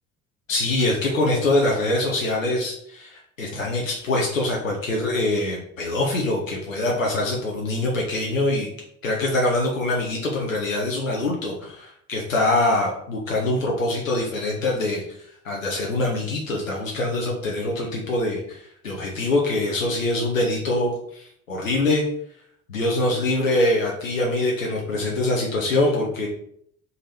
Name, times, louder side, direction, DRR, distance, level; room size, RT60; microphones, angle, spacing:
voice 1, 0.5-8.7 9.0-15.0 15.4-22.0 22.7-26.3, left 2 dB, 85° left, -2 dB, 0.6 m, -24 dB
3.8 x 3.0 x 4.1 m, 0.68 s
figure-of-eight pair, 45°, 39 cm